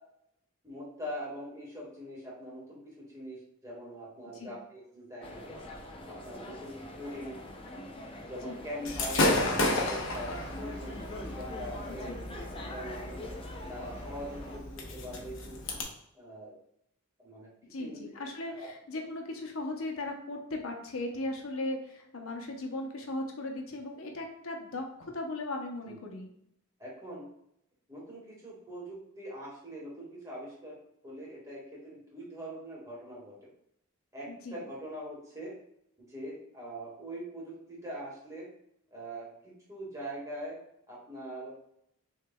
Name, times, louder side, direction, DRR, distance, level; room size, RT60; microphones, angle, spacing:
voice 1, 0.6-5.6 6.1-7.4 8.3-9.2 9.5-13.3 13.7-15.6 16.1-16.6 17.2-17.5 17.8-18.0 18.5-18.7 25.9-26.0 26.8-27.3 27.9-30.8 31.0-33.5 34.1-35.5 36.0-38.5 38.9-40.6 40.9-41.5, equal, 15° right, -6 dB, 1.7 m, -43 dB
sound 1, 5.2-14.6, left 1 dB, 25° left, 0.6 m, -44 dB
Gunshot gunfire / Fireworks, 8.8-15.8, left 2 dB, 65° left, 0.9 m, -33 dB
voice 2, 11.9-12.2 17.6-26.3 34.3-34.6, left 2 dB, 85° left, 2 dB, 0.8 m, -37 dB
6.5 x 3.2 x 2.3 m, 0.75 s
head